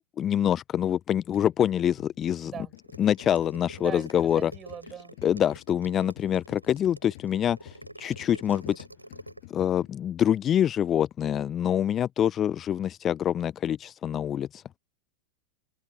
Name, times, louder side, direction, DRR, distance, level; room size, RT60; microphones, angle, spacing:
voice 1, 0.2-2.5 3.0-4.5 5.2-8.8 9.5-14.6, left 10 dB, 25° left, 0.8 m, -26 dB
sound 1, 1.3-10.2, left 22 dB, 50° left, 6.9 m, -50 dB
sound 2, 2.8-9.4, right 1 dB, 85° right, 3.7 m, -47 dB
voice 2, 3.8-5.2, right 8 dB, 25° right, 5.9 m, -40 dB
open air
figure-of-eight pair, 90°, 0 cm